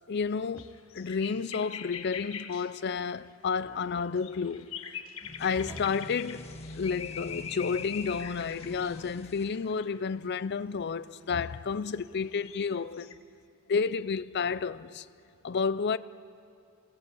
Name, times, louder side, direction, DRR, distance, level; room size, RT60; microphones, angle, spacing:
voice 1, 0.1-0.7 0.9-4.7 5.4-6.5 6.7-13.2 13.7-15.1 15.4-16.0, left 5 dB, 50° left, 0.5 m, -31 dB
sound 1, 0.6-2.8 3.4-10.1 10.9-11.0 12.0-13.1, left 8 dB, 75° left, 1.3 m, -43 dB
sound 2, 0.6-1.0 3.6-4.0 5.6-6.1 8.6-9.3, equal, 5° right, 0.6 m, -48 dB
sound 3, 5.2-10.1, left 1 dB, 30° left, 1.5 m, -47 dB
26.0 x 20.5 x 8.3 m
head